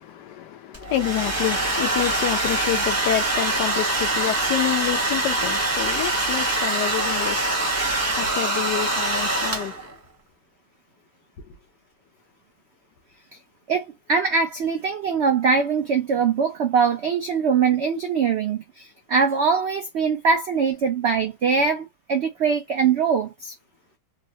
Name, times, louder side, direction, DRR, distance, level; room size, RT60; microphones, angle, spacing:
voice 1, 0.0-9.8, left 12 dB, 85° left, 1.2 m, -28 dB
Domestic sounds home sounds, 0.7-9.9, right 2 dB, 10° right, 0.8 m, -24 dB
voice 2, 13.7-23.5, right 5 dB, 80° right, 0.6 m, -22 dB
3.7 x 2.0 x 2.7 m
omnidirectional pair, 1.8 m